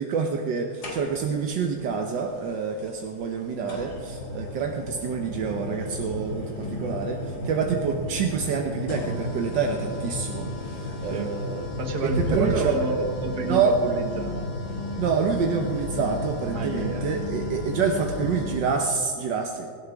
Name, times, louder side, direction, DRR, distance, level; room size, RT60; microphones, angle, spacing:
voice 1, 0.0-11.7 12.2-12.8 13.5-13.8 15.0-19.7, right 5 dB, 75° right, 2 dB, 1.6 m, -27 dB
sound 1, 0.8-1.4 2.8-2.9 3.7-18.7, left 1 dB, 60° left, 2.8 m, -33 dB
voice 2, 11.8-14.4 16.5-17.1, right 3 dB, 60° right, 5 dB, 1.8 m, -28 dB
17.5 x 17.0 x 3.5 m, 2.1 s
omnidirectional pair, 2.0 m